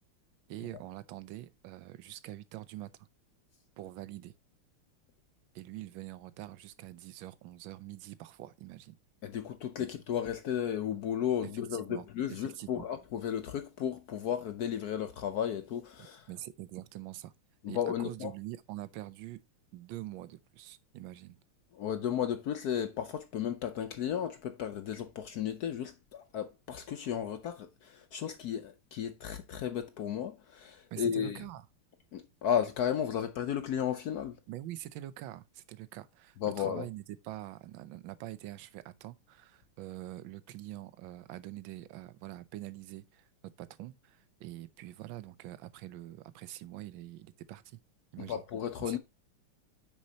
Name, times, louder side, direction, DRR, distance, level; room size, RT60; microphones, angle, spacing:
voice 1, 0.5-3.1 3.8-4.3 5.5-9.0 9.8-9.9 11.4-12.1 12.6-12.9 16.3-17.3 17.7-19.4 19.7-21.4 30.9-31.7 34.5-47.8 48.1-48.4 48.8-49.0, right 14 dB, 70° right, 1.3 m, -45 dB
voice 2, 9.2-16.3 17.6-18.3 21.7-31.4 32.1-34.4 36.4-36.9 48.2-49.0, left 9 dB, 70° left, 0.9 m, -34 dB
8.5 x 6.4 x 2.7 m
omnidirectional pair, 2.4 m